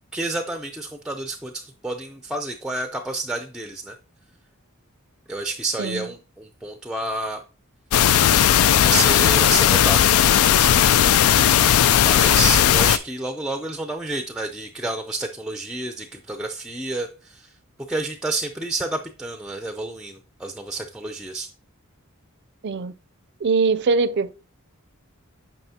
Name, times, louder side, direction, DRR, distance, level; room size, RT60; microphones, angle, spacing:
voice 1, 0.1-4.0 5.3-7.4 8.8-10.7 12.0-17.5 17.9-21.5, right 2 dB, 5° right, 0.5 m, -29 dB
sound 1, 7.9-13.0, left 10 dB, 75° left, 0.3 m, -16 dB
voice 2, 22.6-22.9 23.4-24.3, right 4 dB, 55° right, 0.5 m, -22 dB
9.0 x 5.7 x 2.8 m
head